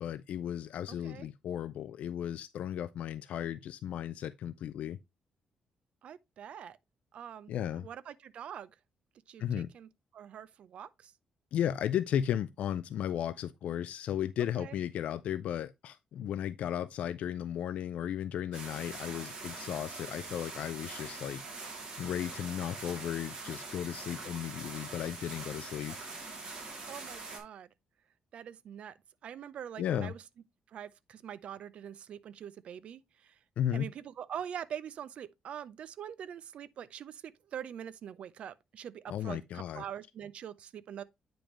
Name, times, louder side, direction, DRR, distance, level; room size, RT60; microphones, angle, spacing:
voice 1, 0.0-5.0 7.5-7.9 9.4-9.7 11.5-21.4 22.0-25.9 29.8-30.1 33.6-33.9 39.1-39.8, left 10 dB, 65° left, 0.3 m, -35 dB
voice 2, 6.0-6.8 7.1-8.7 9.3-11.1 14.5-14.7 26.9-27.7 28.3-29.0 29.2-30.2 30.7-33.4 33.7-41.0, right 9 dB, 50° right, 0.5 m, -44 dB
sound 1, 18.5-27.4, right 3 dB, 35° right, 2.6 m, -43 dB
8.7 x 5.1 x 3.0 m
cardioid pair, 180°, 3 cm